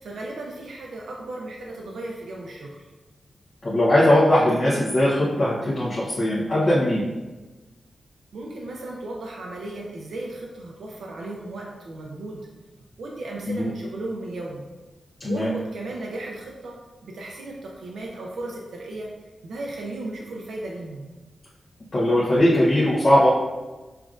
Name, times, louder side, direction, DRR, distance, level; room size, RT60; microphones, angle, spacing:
voice 1, 0.0-2.8 8.3-12.5 13.0-14.6 15.2-19.1 19.4-21.1, right 2 dB, 90° right, -2 dB, 0.5 m, -35 dB
voice 2, 3.6-7.0 13.5-13.7 15.2-15.5 21.9-23.3, left 1 dB, 40° left, -8 dB, 0.8 m, -20 dB
5.5 x 2.4 x 2.4 m, 1.2 s
wide cardioid pair, 115°, 0 cm